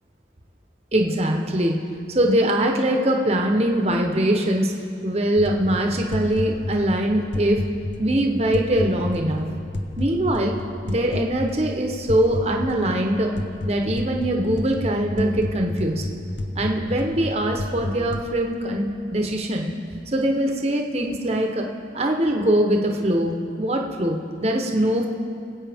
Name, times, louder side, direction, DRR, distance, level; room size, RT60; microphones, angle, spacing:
voice 1, 0.9-1.7 2.1-4.7 5.0-7.6 8.0-9.4 10.0-10.5 10.9-13.3 13.6-16.0 16.5-19.7 20.1-21.7 21.9-25.1, right 1 dB, 35° right, 2 dB, 0.9 m, -22 dB
sound 1, 5.4-18.3, left 1 dB, 75° left, 0.8 m, -31 dB
23.0 x 8.3 x 3.5 m, 2.4 s
head